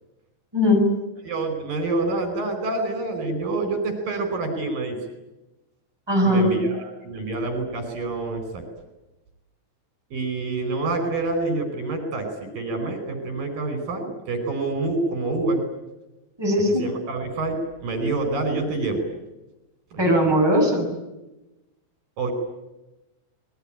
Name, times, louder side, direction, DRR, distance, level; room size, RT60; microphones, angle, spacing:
voice 1, 0.5-0.9 6.1-6.5 16.4-16.9 20.0-20.9, equal, 5° right, 1 dB, 7.5 m, -19 dB
voice 2, 1.2-5.0 6.2-8.6 10.1-15.6 16.8-19.1 19.9-20.1 22.2-22.3, right 2 dB, 70° right, 7 dB, 6.4 m, -27 dB
27.5 x 21.5 x 8.9 m, 0.98 s
omnidirectional pair, 4.2 m